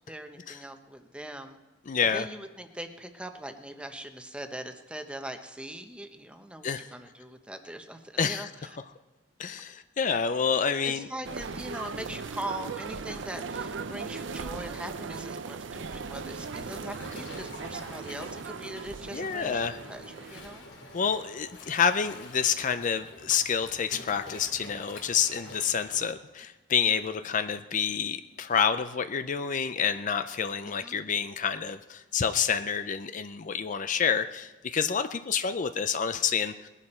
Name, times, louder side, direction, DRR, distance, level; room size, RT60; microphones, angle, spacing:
voice 1, 0.1-1.6 2.0-8.8 10.8-20.7 30.8-31.1, right 1 dB, 5° right, 6 dB, 0.9 m, -41 dB
voice 2, 1.9-2.3 6.6-6.9 8.2-8.5 9.4-11.1 19.1-19.8 20.9-36.7, left 7 dB, 40° left, 10 dB, 0.5 m, -28 dB
sound 1, 11.2-20.6, right 4 dB, 65° right, 0.6 m, -38 dB
Waves surf, 15.7-26.1, left 2 dB, 75° left, 2.8 m, -48 dB
20.0 x 11.0 x 4.4 m, 1.2 s
head